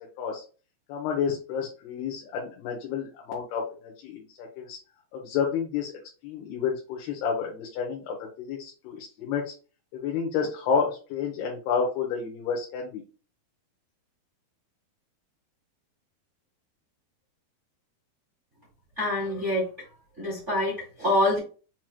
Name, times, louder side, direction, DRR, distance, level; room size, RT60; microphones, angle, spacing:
voice 1, 0.9-4.8 5.1-9.5 9.9-13.0, left 6 dB, 80° left, 0 dB, 2.9 m, -30 dB
voice 2, 19.0-19.7 20.2-21.4, left 1 dB, 75° right, -5 dB, 0.6 m, -25 dB
7.5 x 3.0 x 2.2 m, 0.36 s
omnidirectional pair, 4.6 m